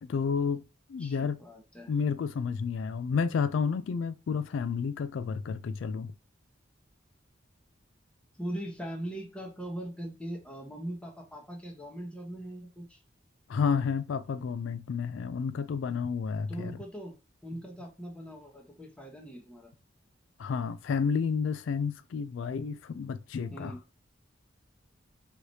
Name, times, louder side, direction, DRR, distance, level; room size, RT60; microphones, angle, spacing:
voice 1, 0.0-0.6 0.9-1.4 1.9-6.1 13.5-16.8 20.4-23.7, left 6 dB, 80° left, 0.3 m, -30 dB
voice 2, 1.0-1.9 8.4-13.0 16.5-17.1 17.4-19.7 23.5-23.8, right 1 dB, 5° left, 1.0 m, -40 dB
4.8 x 3.1 x 2.7 m
head